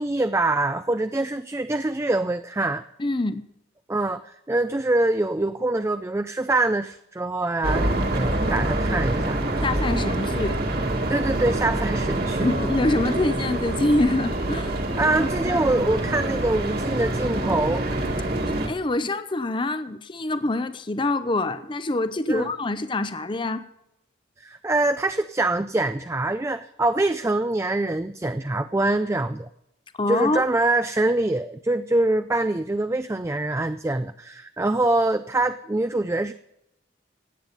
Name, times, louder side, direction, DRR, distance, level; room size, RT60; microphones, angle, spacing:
voice 1, 0.0-2.8 3.9-9.6 11.1-12.5 15.0-17.9 22.3-22.5 24.4-29.5 30.1-36.3, right 2 dB, 15° right, 0.4 m, -24 dB
voice 2, 3.0-3.4 9.6-10.6 12.4-14.8 18.6-23.6 30.0-30.4, left 2 dB, 25° left, 0.6 m, -25 dB
sound 1, 7.6-18.7, right 1 dB, 50° right, 2.0 m, -26 dB
16.0 x 9.5 x 5.4 m
head